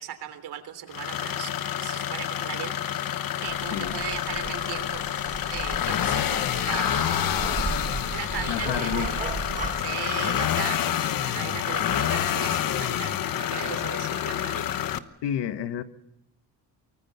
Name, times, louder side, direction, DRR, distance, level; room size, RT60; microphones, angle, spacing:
voice 1, 0.0-1.5 1.8-2.7 3.4-5.1 5.5-7.4 8.1-9.3 9.8-14.7, right 10 dB, 70° right, 3.4 m, -37 dB
sound 1, 0.9-15.0, left 10 dB, 55° left, 1.1 m, -28 dB
sound 2, 3.5-9.8, right 4 dB, 20° right, 1.3 m, -36 dB
voice 2, 8.5-9.1 15.2-15.8, left 10 dB, 85° left, 1.4 m, -30 dB
24.0 x 23.5 x 7.0 m
cardioid pair, 165°, 41 cm